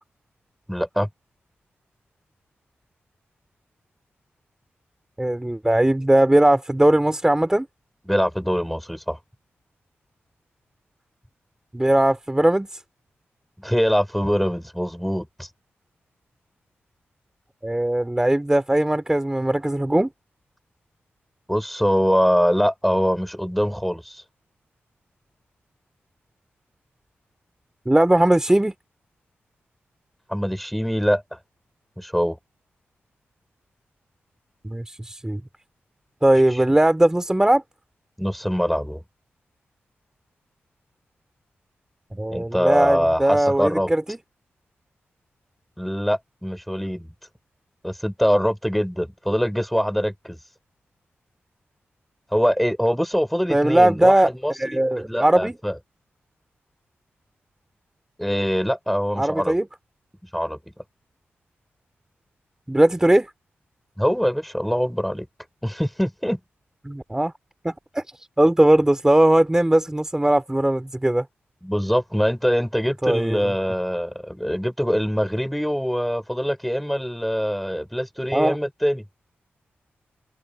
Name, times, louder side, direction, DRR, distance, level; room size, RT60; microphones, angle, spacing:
voice 1, 0.7-1.1 8.1-9.2 13.6-15.5 21.5-24.2 30.3-31.4 32.0-32.4 38.2-39.0 42.3-43.9 45.8-47.1 47.8-50.4 52.3-55.8 58.2-59.6 60.3-60.6 64.0-65.3 65.6-66.4 71.6-79.0, equal, ahead, 4.7 m, -23 dB
voice 2, 5.2-7.7 11.7-12.7 17.6-20.1 27.9-28.7 34.6-35.4 36.2-37.6 42.1-44.2 53.5-54.3 54.6-55.6 59.2-59.7 62.7-63.3 66.8-67.3 67.6-68.0 68.4-71.2 73.0-73.5 78.3-78.6, right 1 dB, 15° right, 2.7 m, -19 dB
open air
cardioid pair, 60°, 4 cm